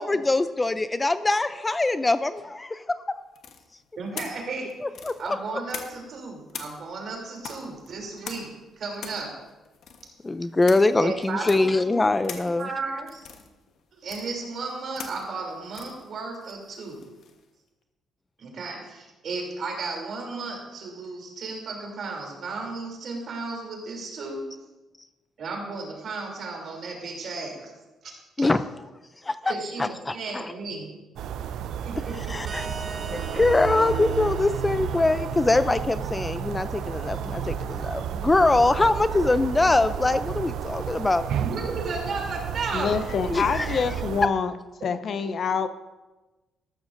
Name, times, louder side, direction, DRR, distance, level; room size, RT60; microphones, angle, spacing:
voice 1, 0.0-3.0 4.8-5.4 10.2-12.7 28.4-28.6 29.2-29.5 29.8-30.5 32.2-32.8 33.1-41.3 43.3-43.8, left 2 dB, 20° left, 12 dB, 0.4 m, -23 dB
sound 1, 3.4-6.2 6.5-17.5, left 6 dB, 70° left, 1.2 m, -43 dB
voice 2, 4.0-4.7 5.2-9.3 11.0-12.0 12.2-13.2 13.9-17.1 18.4-24.4 25.4-27.7 28.0-28.1 28.4-28.5 29.4-30.9 31.7-32.7 33.0-33.1 41.4-42.9 44.8-44.9, right 3 dB, 60° right, 0 dB, 3.1 m, -34 dB
sound 2, 31.2-44.3, right 8 dB, 80° right, 0.5 m, -32 dB
sound 3, 32.5-35.9, right 3 dB, 40° right, 1.3 m, -41 dB
voice 3, 42.7-44.5 44.8-45.7, left 6 dB, 55° left, 11 dB, 0.6 m, -26 dB
13.5 x 12.0 x 2.6 m, 1.1 s
cardioid pair, 90°, 0 cm